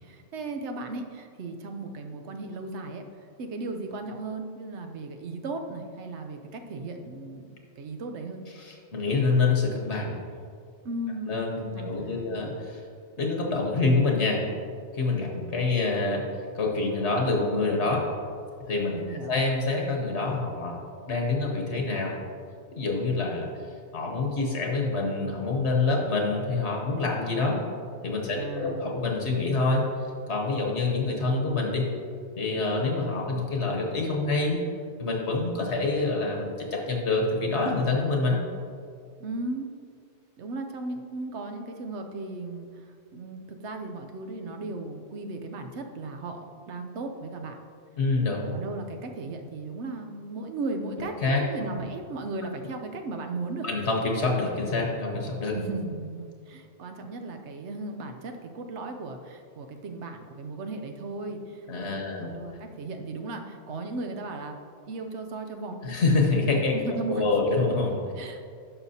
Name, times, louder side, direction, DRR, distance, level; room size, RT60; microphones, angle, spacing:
voice 1, 0.0-8.4 10.8-12.4 18.9-19.4 28.3-28.8 39.2-39.7 40.4-47.6 48.5-53.7 55.5-64.6 64.9-66.0 66.7-67.5 68.2-68.4, right 2 dB, 75° right, 5 dB, 1.0 m, -36 dB
voice 2, 8.6-10.2 11.3-12.8 13.2-14.4 14.9-16.2 16.5-18.0 18.6-20.8 21.1-22.2 22.7-23.5 23.9-27.6 28.0-29.8 30.3-31.9 32.4-34.6 35.0-38.4 48.0-48.5 51.2-51.4 53.6-55.5 61.7-62.3 65.8-66.7 67.1-68.0, left 3 dB, 70° left, 0 dB, 1.2 m, -26 dB
11.0 x 5.8 x 2.7 m, 2.2 s
omnidirectional pair, 1.2 m